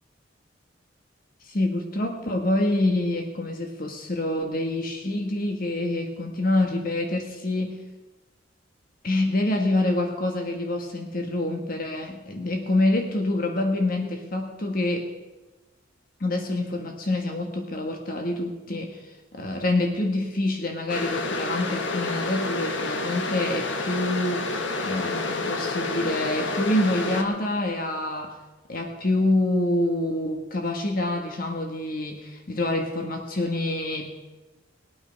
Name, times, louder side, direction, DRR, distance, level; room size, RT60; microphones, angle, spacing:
voice 1, 1.5-7.8 9.0-15.1 16.2-19.0 19.3-24.5 24.8-28.3 28.7-34.1, left 1 dB, 50° left, 3 dB, 1.5 m, -26 dB
sound 1, 20.9-27.2, left 3 dB, 70° left, 1.4 m, -29 dB
20.0 x 8.9 x 5.3 m, 1.2 s
head